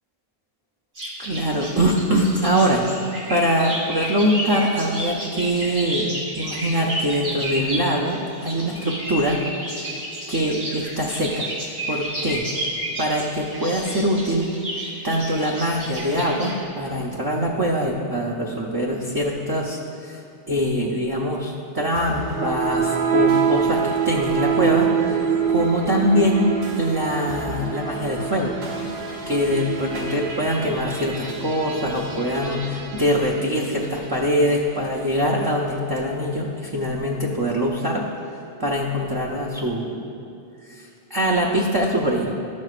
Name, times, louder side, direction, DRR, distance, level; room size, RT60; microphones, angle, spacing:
sound 1, 0.9-16.6, equal, 90° right, 2.2 m, -31 dB
voice 1, 1.2-2.8 3.3-9.4 10.3-11.5 11.9-12.5 13.0-14.5 15.0-20.2 20.5-25.2 25.5-28.5 29.3-38.1 38.6-40.0 40.7-42.3, equal, 30° right, -3 dB, 0.5 m, -23 dB
sound 2, 21.9-34.3, right 7 dB, 70° right, 1.2 m, -26 dB
12.5 x 6.3 x 2.4 m, 2.6 s
omnidirectional pair, 1.0 m